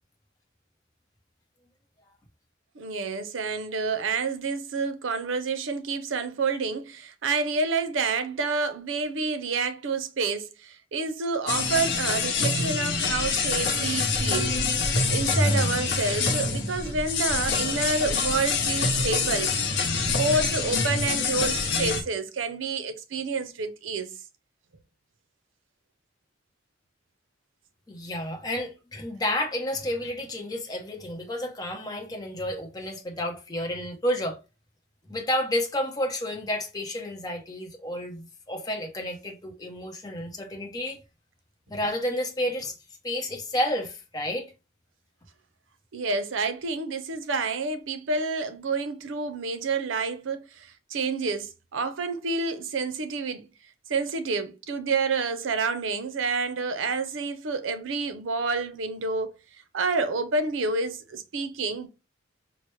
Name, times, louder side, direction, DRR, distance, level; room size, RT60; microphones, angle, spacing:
voice 1, 2.8-14.5 15.1-19.6 20.1-24.1 45.9-53.4 53.9-59.3 59.7-61.9, right 4 dB, 85° right, 0.5 m, -29 dB
sound 1, 11.5-22.0, left 4 dB, 65° left, 0.7 m, -26 dB
voice 2, 27.9-34.4 35.1-41.0 41.7-42.8 43.0-44.5, left 1 dB, 20° left, 0.7 m, -31 dB
4.5 x 2.0 x 3.1 m
head